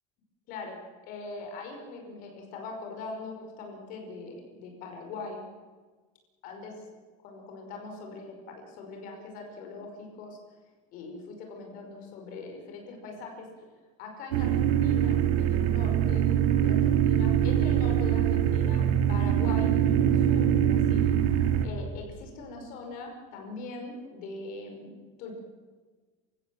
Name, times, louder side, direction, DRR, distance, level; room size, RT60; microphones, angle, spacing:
voice 1, 1.0-5.4 6.4-6.8 7.2-10.4 10.9-13.7 14.0-16.3 16.5-21.2 21.6-25.3, left 3 dB, 50° left, 2 dB, 5.4 m, -41 dB
sound 1, 14.3-21.6, right 10 dB, 75° right, 2.4 m, -23 dB
27.5 x 16.5 x 7.6 m, 1.4 s
supercardioid pair, 150°, 18 cm